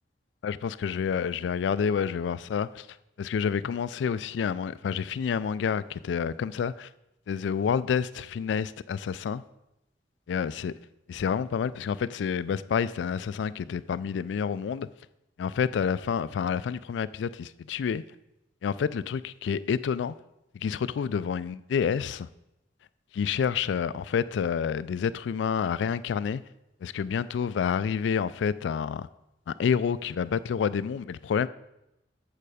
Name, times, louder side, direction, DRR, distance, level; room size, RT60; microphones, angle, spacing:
voice 1, 0.4-2.9 3.2-6.9 7.3-9.4 10.3-10.7 11.1-14.9 15.4-18.0 18.6-20.1 20.5-22.3 23.1-26.4 26.8-29.1 29.5-31.5, left 7 dB, 70° left, 0.3 m, -28 dB
7.4 x 6.8 x 4.9 m
head